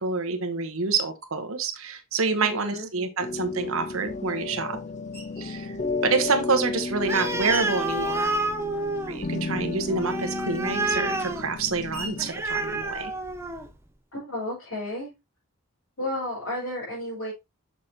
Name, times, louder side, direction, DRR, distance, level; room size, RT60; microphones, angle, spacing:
voice 1, 0.0-4.8 5.4-5.8 6.0-8.4 9.1-13.1, right 4 dB, 70° right, 1.1 m, -27 dB
voice 2, 2.4-2.9 14.1-15.1 16.0-17.3, left 1 dB, 65° left, 4.5 m, -32 dB
sound 1, 3.2-12.3, left 3 dB, 30° left, 0.4 m, -33 dB
Screech, 5.1-5.6 6.3-9.1 9.3-13.6, right 3 dB, 5° left, 4.0 m, -45 dB
Animal, 7.0-13.8, right 2 dB, 10° right, 0.6 m, -30 dB
6.6 x 6.5 x 2.8 m
head